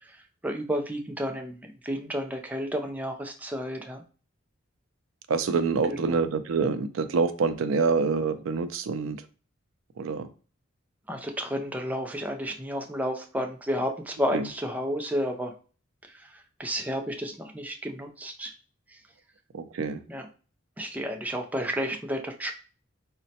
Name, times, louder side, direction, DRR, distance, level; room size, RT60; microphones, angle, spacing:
voice 1, 0.4-4.0 5.9-6.0 11.1-15.5 16.6-18.5 20.1-20.3 20.8-22.5, equal, 10° right, 3 dB, 0.3 m, -31 dB
voice 2, 5.3-9.2 10.0-10.3 14.3-14.5 19.5-20.0, right 4 dB, 75° right, 10 dB, 0.4 m, -26 dB
4.0 x 2.1 x 2.7 m, 0.37 s
head